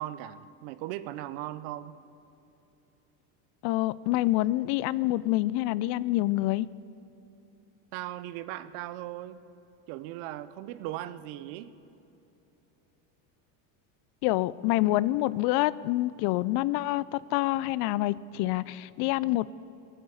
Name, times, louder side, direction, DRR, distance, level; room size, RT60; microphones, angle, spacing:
voice 1, 0.0-2.0 7.9-9.4 9.9-11.7, right 14 dB, 75° right, 14 dB, 0.9 m, -38 dB
voice 2, 3.6-6.7 14.2-19.5, left 17 dB, 65° left, 19 dB, 0.6 m, -27 dB
18.0 x 8.1 x 9.8 m, 2.9 s
supercardioid pair, 105°, 44 cm